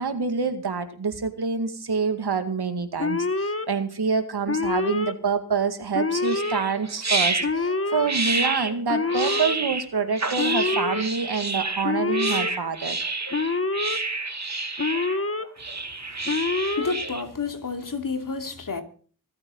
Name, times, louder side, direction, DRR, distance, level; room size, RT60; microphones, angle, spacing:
voice 1, 0.0-13.0, right 5 dB, 70° right, 2.1 m, -27 dB
Alarm, 3.0-3.7 4.5-5.1 5.9-6.6 7.4-8.1 8.9-9.6 10.4-11.0 11.8-12.5 13.3-14.0 14.8-15.4 16.3-16.9, left 3 dB, 35° left, 1.5 m, -26 dB
sound 1, 6.2-17.2, right 3 dB, 40° right, 2.7 m, -29 dB
voice 2, 16.8-18.8, left 4 dB, 50° left, 2.8 m, -30 dB
25.0 x 8.8 x 3.9 m
cardioid pair, 50°, 40 cm